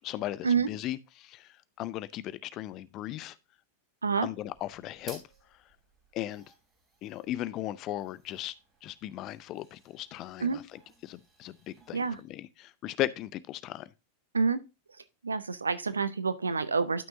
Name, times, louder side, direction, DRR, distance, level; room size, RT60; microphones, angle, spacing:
voice 1, 0.0-3.4 4.2-5.2 6.1-6.4 7.0-8.5 8.8-13.9, left 14 dB, 35° left, 0.5 m, -37 dB
sound 1, 4.4-12.2, right 3 dB, 25° right, 3.6 m, -57 dB
voice 2, 15.2-17.1, right 5 dB, 75° right, 0.7 m, -28 dB
12.0 x 6.1 x 2.7 m
figure-of-eight pair, 90°, 0 cm